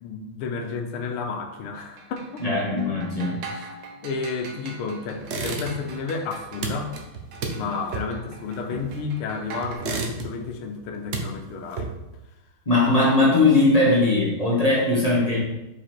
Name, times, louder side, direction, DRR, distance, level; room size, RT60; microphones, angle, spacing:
voice 1, 0.0-2.4 3.6-3.7 4.0-7.0 7.5-12.0, left 4 dB, 90° left, 5 dB, 1.6 m, -31 dB
sound 1, 1.8-9.8, right 3 dB, 65° right, 1.5 m, -42 dB
voice 2, 2.4-3.4 8.7-8.8 12.6-15.4, left 2 dB, 20° left, -6 dB, 1.1 m, -20 dB
sound 2, 5.2-6.0 6.3-9.2 9.6-10.5 10.9-12.2, right 3 dB, 85° right, 0.6 m, -32 dB
5.0 x 4.9 x 4.4 m, 0.97 s
omnidirectional pair, 2.3 m